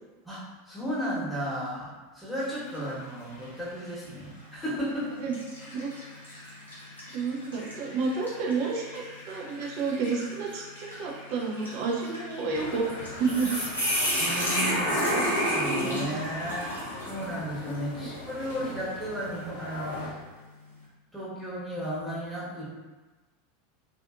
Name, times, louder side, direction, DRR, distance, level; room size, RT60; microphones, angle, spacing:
voice 1, 0.2-5.2 14.2-20.2 21.1-22.6, equal, ahead, -9 dB, 1.1 m, -34 dB
sound 1, 2.4-2.9 3.4-3.5 4.5-4.7 5.3-17.3, equal, 85° left, 0.8 m, -32 dB
voice 2, 7.1-12.9 13.2-13.7, right 4 dB, 50° right, -2 dB, 0.6 m, -30 dB
sound 2, 12.5-20.1, left 2 dB, 60° left, 0.5 m, -41 dB
2.6 x 2.5 x 2.4 m, 1.2 s
figure-of-eight pair, 85°, 0 cm